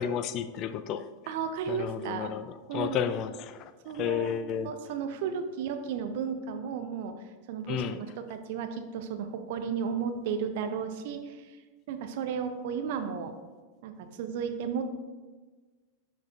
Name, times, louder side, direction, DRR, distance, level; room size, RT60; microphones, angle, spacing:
voice 1, 0.0-1.1 1.7-2.4 2.7-4.7 7.7-8.0, left 8 dB, 35° left, 12 dB, 0.3 m, -32 dB
voice 2, 1.3-2.3 2.7-3.0 3.8-7.1 7.5-11.6 11.9-13.3 13.8-13.9 14.2-14.8, right 7 dB, 50° right, 7 dB, 0.6 m, -34 dB
10.5 x 4.8 x 2.5 m, 1.3 s
figure-of-eight pair, 90°, 0 cm